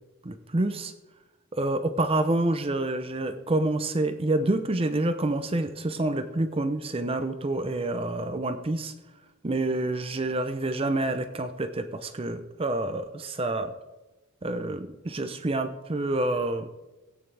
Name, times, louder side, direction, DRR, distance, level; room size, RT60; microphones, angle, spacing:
voice 1, 0.2-0.9 1.5-8.9 9.4-13.7 14.4-16.7, right 2 dB, 25° right, 9 dB, 0.6 m, -28 dB
17.5 x 9.2 x 3.3 m, 1.1 s
head